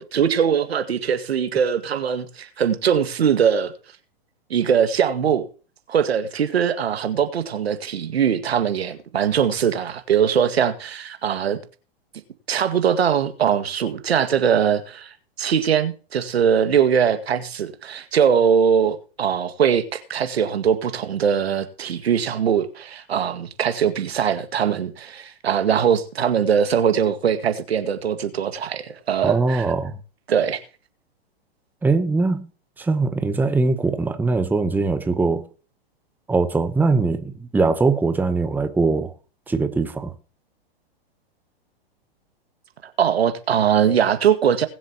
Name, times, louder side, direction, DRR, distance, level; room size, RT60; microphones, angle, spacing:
voice 1, 0.0-3.7 4.5-5.5 5.9-11.6 12.5-29.7 30.3-30.6 43.0-44.7, right 8 dB, 85° right, 2.0 m, -21 dB
voice 2, 29.2-30.0 31.8-32.5 32.8-35.5 36.3-39.1 39.5-40.1, right 3 dB, 5° right, 0.9 m, -21 dB
20.5 x 7.4 x 2.9 m
hypercardioid pair, 130°, 31 cm